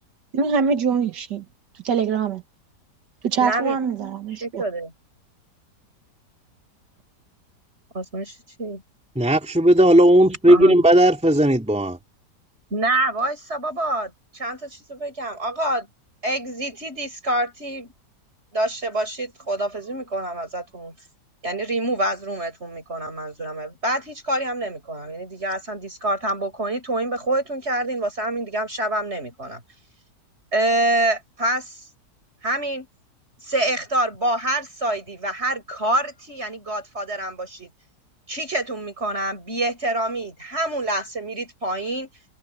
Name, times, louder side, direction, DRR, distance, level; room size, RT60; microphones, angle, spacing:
voice 1, 0.3-1.4 1.8-2.4 3.2-4.6, right 6 dB, 90° right, 2.0 m, -23 dB
voice 2, 3.4-3.8 4.4-4.9 7.9-8.8 10.5-10.8 12.7-15.9 16.2-17.9 18.5-20.9 21.4-29.6 30.5-31.8 32.4-32.9 33.4-37.7 38.3-42.1, right 1 dB, 40° right, 7.5 m, -26 dB
voice 3, 9.2-12.0, right 1 dB, 5° right, 2.4 m, -15 dB
omnidirectional pair, 1.8 m